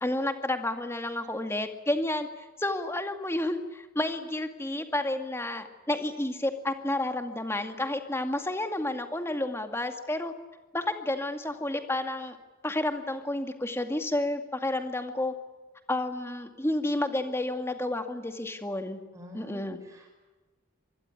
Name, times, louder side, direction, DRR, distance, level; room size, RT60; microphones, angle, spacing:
voice 1, 0.0-10.3 10.7-12.4 12.6-15.3 15.9-19.0 19.3-19.8, left 1 dB, 10° left, 6 dB, 2.2 m, -31 dB
voice 2, 19.1-20.1, left 1 dB, 15° right, 1 dB, 6.0 m, -47 dB
26.5 x 21.0 x 9.8 m, 1.2 s
head